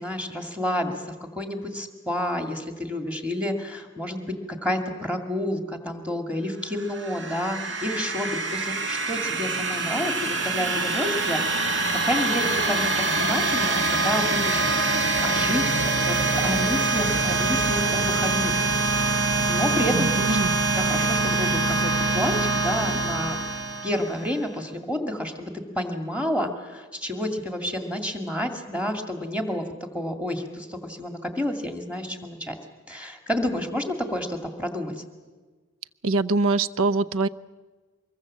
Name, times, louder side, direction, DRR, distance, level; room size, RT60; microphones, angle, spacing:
voice 1, 0.0-11.8 12.0-12.9 13.2-14.6 15.2-16.2 16.4-18.7 19.1-23.4 23.8-29.6 29.9-32.6 32.9-34.9, left 1 dB, 5° right, 4 dB, 2.1 m, -30 dB
sound 1, 6.8-24.4, right 3 dB, 60° right, 1.3 m, -24 dB
voice 2, 19.9-20.5 36.0-37.3, right 3 dB, 80° right, 15 dB, 0.7 m, -23 dB
24.0 x 22.0 x 7.4 m, 1.3 s
head